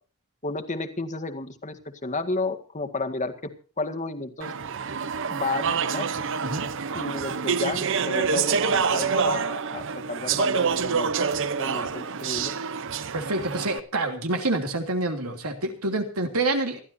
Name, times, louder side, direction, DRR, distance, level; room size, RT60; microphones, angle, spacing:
voice 1, 0.4-3.3 3.8-4.5 5.3-6.1 6.9-11.1 11.6-12.5, left 3 dB, 35° left, 7 dB, 1.9 m, -32 dB
Speech / Chatter, 4.4-13.8, right 6 dB, 60° right, 0.9 m, -27 dB
voice 2, 13.1-16.8, right 2 dB, 85° right, 5 dB, 3.0 m, -27 dB
27.5 x 12.0 x 2.8 m, 0.37 s
head